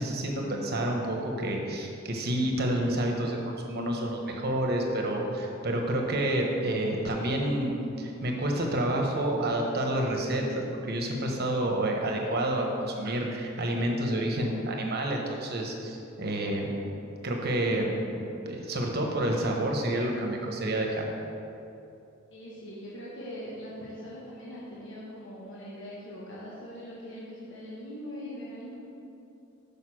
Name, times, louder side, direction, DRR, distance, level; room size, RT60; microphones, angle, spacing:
voice 1, 0.0-16.7 17.2-21.1, right 1 dB, 50° right, 1 dB, 1.1 m, -29 dB
voice 2, 22.3-28.8, equal, 65° left, -6 dB, 1.3 m, -41 dB
6.6 x 5.3 x 6.2 m, 2.8 s
head